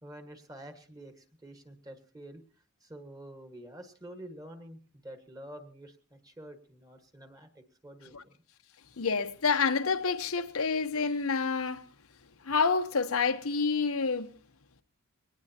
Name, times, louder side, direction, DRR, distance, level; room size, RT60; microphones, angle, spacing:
voice 1, 0.0-2.4 2.8-8.4, right 1 dB, 15° right, 1.5 m, -48 dB
voice 2, 9.0-11.8 12.4-14.4, left 5 dB, 80° left, 1.0 m, -28 dB
22.0 x 18.0 x 2.9 m
head